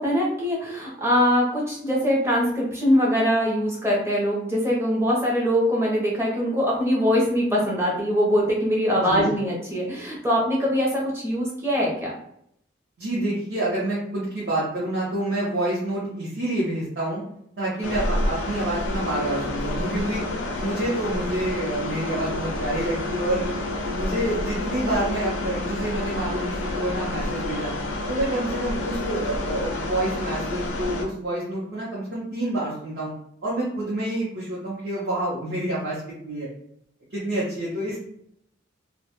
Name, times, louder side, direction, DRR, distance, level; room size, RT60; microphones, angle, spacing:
voice 1, 0.0-12.1, equal, 15° right, -4 dB, 0.6 m, -22 dB
voice 2, 13.0-17.2 17.6-20.2 20.6-23.5 23.9-27.7 28.1-33.1 33.4-36.5 37.1-38.0, right 1 dB, 60° right, -7 dB, 0.7 m, -28 dB
sound 1, 17.8-31.0, left 2 dB, 80° left, 0.4 m, -29 dB
2.1 x 2.0 x 2.9 m, 0.71 s
head